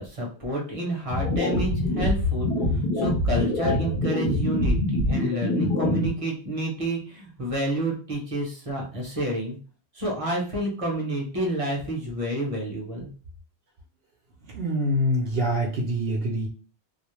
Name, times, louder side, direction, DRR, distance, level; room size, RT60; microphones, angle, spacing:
voice 1, 0.0-2.5 2.9-9.5 9.9-13.1, right 1 dB, 35° right, -1 dB, 0.7 m, -29 dB
sound 1, 1.1-6.1, left 1 dB, 60° left, 1.0 m, -24 dB
voice 2, 14.5-16.5, equal, 65° right, -1 dB, 0.8 m, -25 dB
2.4 x 2.1 x 3.0 m, 0.40 s
omnidirectional pair, 1.1 m